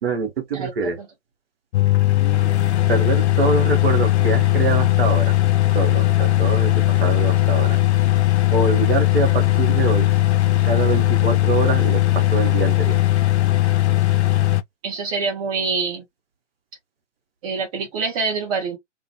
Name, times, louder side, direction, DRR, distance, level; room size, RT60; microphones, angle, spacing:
voice 1, 0.0-1.0 2.9-5.4 5.7-7.8 8.5-10.1 10.6-13.0, right 4 dB, 50° right, 1.1 m, -24 dB
sound 1, 1.7-14.6, left 15 dB, 65° left, 0.5 m, -18 dB
voice 2, 14.8-16.0 17.4-18.8, right 4 dB, 30° right, 0.9 m, -25 dB
2.5 x 2.5 x 2.7 m
figure-of-eight pair, 120°, 37 cm